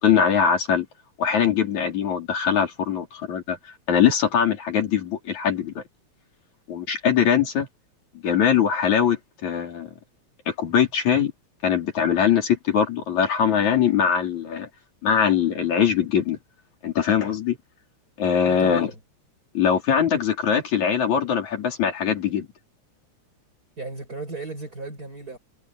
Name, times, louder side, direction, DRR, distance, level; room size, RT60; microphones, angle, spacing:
voice 1, 0.0-0.9 1.2-3.6 3.9-5.8 6.7-7.7 8.2-9.9 10.5-11.3 11.6-14.7 15.0-16.4 16.8-17.6 18.2-18.9 19.5-22.5, left 8 dB, 70° left, 5.1 m, -22 dB
voice 2, 18.4-19.0 23.8-25.4, right 3 dB, 30° right, 6.6 m, -35 dB
omnidirectional pair, 3.4 m